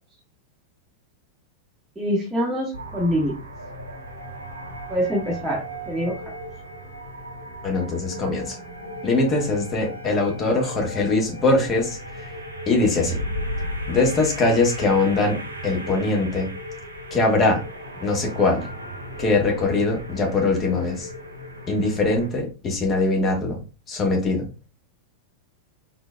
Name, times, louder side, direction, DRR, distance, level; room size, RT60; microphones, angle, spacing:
voice 1, 2.0-3.3 4.9-5.6 5.9-6.1, equal, 5° right, -5 dB, 1.2 m, -24 dB
sound 1, 2.7-22.3, equal, 80° right, 0.8 m, -35 dB
voice 2, 7.6-8.6 9.0-12.0 12.7-13.2 13.9-15.4 15.6-16.5 17.1-17.6 18.0-18.6 19.2-21.1 21.7-23.6 23.9-24.5, left 3 dB, 25° left, 1 dB, 1.4 m, -22 dB
4.3 x 3.9 x 2.3 m, 0.33 s
figure-of-eight pair, 90°, 0 cm